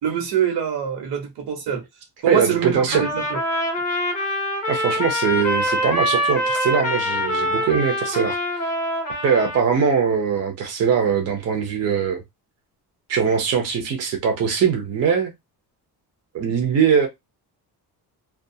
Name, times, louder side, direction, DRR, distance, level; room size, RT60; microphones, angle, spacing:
voice 1, 0.0-1.8 2.2-3.4, right 8 dB, 85° right, 1.1 m, -24 dB
voice 2, 2.3-3.0 4.7-8.6 9.2-12.2 13.1-15.3 16.3-17.1, right 6 dB, 40° right, 0.6 m, -21 dB
Trumpet, 2.9-9.7, left 1 dB, 20° left, 0.8 m, -24 dB
2.3 x 2.3 x 2.6 m
cardioid pair, 175°, 40 cm